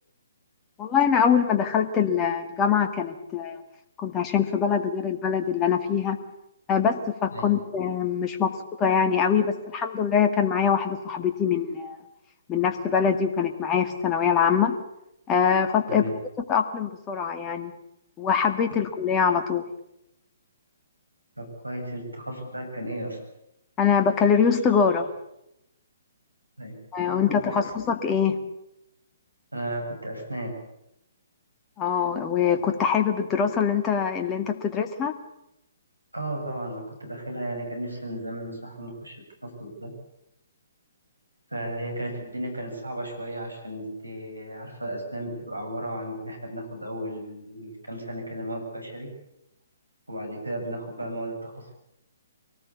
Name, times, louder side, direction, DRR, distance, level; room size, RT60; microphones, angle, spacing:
voice 1, 0.8-3.6 4.0-6.2 6.7-8.5 8.8-12.0 12.5-14.7 15.3-16.1 16.5-17.7 18.2-19.6 23.8-25.1 26.9-28.4 31.8-35.1, left 7 dB, 20° left, 5 dB, 2.0 m, -23 dB
voice 2, 21.4-23.2 26.6-26.7 27.0-27.6 29.5-30.5 36.1-39.2 39.4-39.9 41.5-49.1 50.1-51.7, right 1 dB, 85° right, 3 dB, 7.6 m, -34 dB
24.0 x 19.0 x 8.4 m, 0.83 s
figure-of-eight pair, 130°, 0 cm